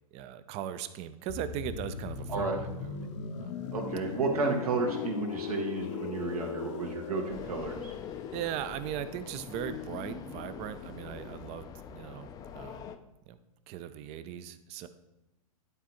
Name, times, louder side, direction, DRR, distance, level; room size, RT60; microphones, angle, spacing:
voice 1, 0.1-3.0 3.4-3.6 8.3-12.3 12.5-12.9 13.3-13.4 13.7-14.9, right 10 dB, 35° right, 12 dB, 0.5 m, -38 dB
sound 1, 1.3-11.0 11.2-11.4, left 7 dB, 50° left, 0.7 m, -40 dB
voice 2, 3.7-7.9, right 3 dB, 75° right, 2 dB, 1.6 m, -32 dB
sound 2, 7.3-13.0, left 8 dB, 20° left, 0.4 m, -43 dB
11.0 x 4.1 x 3.0 m, 0.98 s
hypercardioid pair, 110°, 19 cm